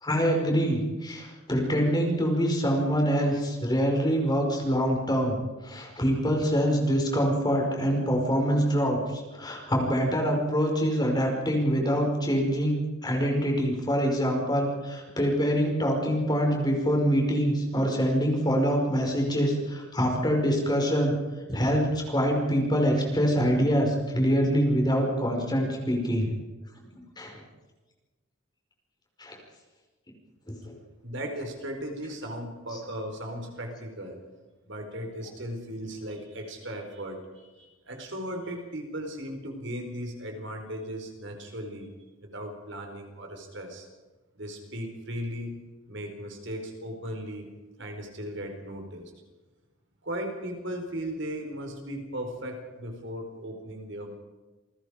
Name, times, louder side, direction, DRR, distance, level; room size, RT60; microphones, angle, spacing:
voice 1, 0.0-5.4 5.6-21.1 21.5-26.3 27.2-27.4 29.2-29.4 30.5-30.7 32.7-32.8, equal, 20° left, 1 dB, 5.2 m, -25 dB
voice 2, 31.0-34.2 34.7-41.9 42.2-43.9 44.3-47.5 47.8-49.1 50.0-54.1, equal, 65° right, 4 dB, 4.7 m, -37 dB
28.0 x 20.0 x 5.1 m, 1.2 s
head